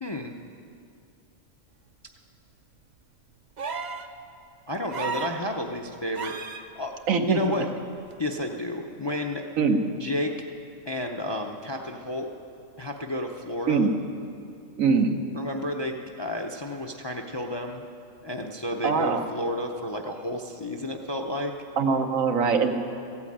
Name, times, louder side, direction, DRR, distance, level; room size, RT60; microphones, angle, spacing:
voice 1, 0.0-0.3 4.7-6.9 7.3-7.7 8.2-9.4 10.0-10.5 10.9-12.3 12.8-13.9 15.3-17.9 18.2-21.5, left 1 dB, 30° left, 3 dB, 0.5 m, -31 dB
sound 1, 3.6-4.1 4.9-5.4 6.1-6.6 8.1-8.2, right 5 dB, 45° right, 0.6 m, -33 dB
voice 2, 7.1-7.5 9.6-9.8 13.7-13.9 14.8-15.1 18.8-19.2 21.8-22.7, right 4 dB, 85° right, 5 dB, 1.4 m, -22 dB
14.5 x 8.8 x 8.6 m, 2.6 s
omnidirectional pair, 1.4 m